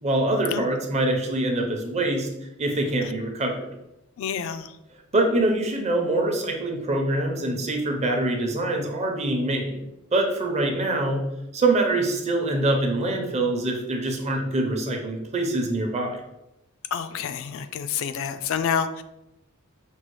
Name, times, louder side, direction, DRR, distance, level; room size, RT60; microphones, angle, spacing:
voice 1, 0.0-2.3 2.6-3.7 5.1-9.7 10.1-11.2 11.5-16.2, right 2 dB, 30° right, 2 dB, 0.6 m, -24 dB
voice 2, 4.2-4.7 16.9-19.0, left 7 dB, 65° left, 10 dB, 0.3 m, -28 dB
5.4 x 2.4 x 3.0 m, 0.89 s
head